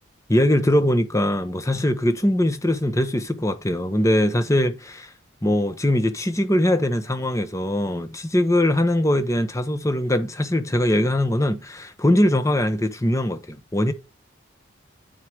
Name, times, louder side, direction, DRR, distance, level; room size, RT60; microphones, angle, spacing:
voice 1, 0.3-5.1 5.4-13.9, left 1 dB, 15° left, 0.9 m, -21 dB
8.9 x 4.8 x 4.7 m
head